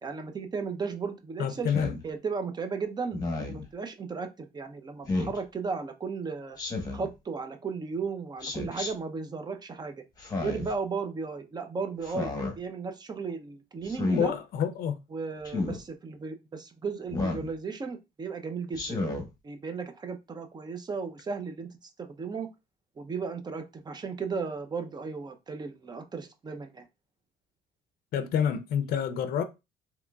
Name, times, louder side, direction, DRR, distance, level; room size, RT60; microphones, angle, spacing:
voice 1, 0.0-1.7 2.0-6.6 6.9-10.0 10.4-14.3 15.1-19.0 19.4-21.7 22.0-22.5 23.0-26.9, right 5 dB, 25° right, 0.6 m, -35 dB
voice 2, 1.4-2.0 14.2-15.0 28.1-29.4, left 8 dB, 60° left, 0.5 m, -28 dB
Speech synthesizer, 1.7-2.0 3.1-3.6 5.1-5.4 6.6-7.1 8.4-8.9 10.2-10.7 12.0-12.5 13.9-14.3 15.5-15.8 17.1-17.5 18.7-19.3, left 2 dB, 20° left, 1.1 m, -31 dB
3.7 x 3.0 x 2.3 m
cardioid pair, 110°, 17 cm